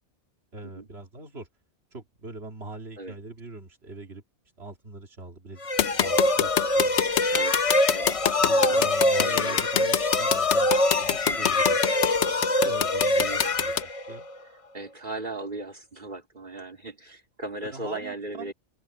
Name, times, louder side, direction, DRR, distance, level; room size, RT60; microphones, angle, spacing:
voice 1, 0.5-1.5 1.9-4.2 4.6-7.3 8.4-11.8 12.6-14.3 17.7-18.5, right 2 dB, 70° right, 2.7 m, -43 dB
sound 1, 5.6-14.4, left 2 dB, 35° left, 0.9 m, -24 dB
sound 2, 5.8-13.8, left 10 dB, 90° left, 1.1 m, -24 dB
voice 2, 8.5-8.9 9.2-9.6 11.3-11.5 13.2-13.5 13.8-14.0 14.7-18.5, right 2 dB, 45° right, 4.3 m, -38 dB
open air
omnidirectional pair, 1.1 m